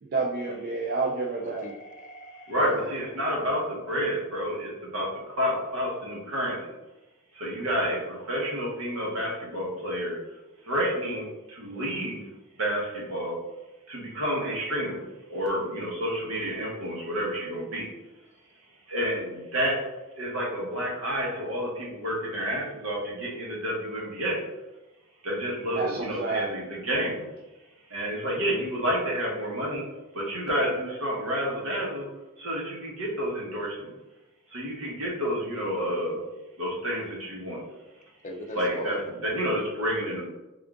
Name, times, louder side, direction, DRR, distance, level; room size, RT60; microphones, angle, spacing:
voice 1, 0.0-1.7 25.7-26.5, right 3 dB, 45° right, -1 dB, 0.4 m, -29 dB
voice 2, 1.4-2.9 38.2-39.0, left 1 dB, 35° left, 4 dB, 0.4 m, -39 dB
voice 3, 2.5-5.1 5.4-6.6 7.3-10.2 10.6-12.2 12.6-13.4 13.9-15.0 15.3-17.9 18.9-19.8 20.2-24.4 25.2-27.3 27.9-29.8 30.1-32.1 32.4-33.9 34.5-36.2 36.6-37.6 38.5-40.3, equal, 75° right, -3 dB, 1.2 m, -29 dB
3.6 x 2.4 x 3.6 m, 1.0 s
head